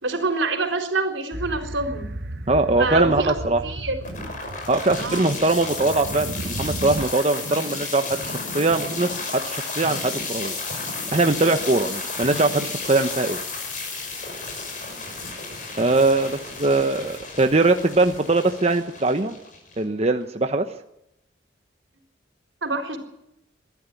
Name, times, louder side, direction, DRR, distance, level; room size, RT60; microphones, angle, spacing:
voice 1, 0.0-2.1 2.8-3.4 3.6-3.9 5.0-5.3 7.5-7.6 11.7-11.9 14.8-15.0 16.6-16.7 22.6-23.0, right 3 dB, 85° right, 5 dB, 4.2 m, -26 dB
sound 1, 1.3-7.1, right 1 dB, 55° right, 1.1 m, -34 dB
voice 2, 2.5-3.6 4.7-10.6 11.1-13.4 15.8-19.4 19.8-20.7, right 2 dB, 35° right, 7 dB, 1.1 m, -21 dB
sound 2, 4.0-20.0, left 3 dB, 45° left, 6.1 m, -33 dB
23.0 x 13.5 x 8.6 m, 0.82 s
head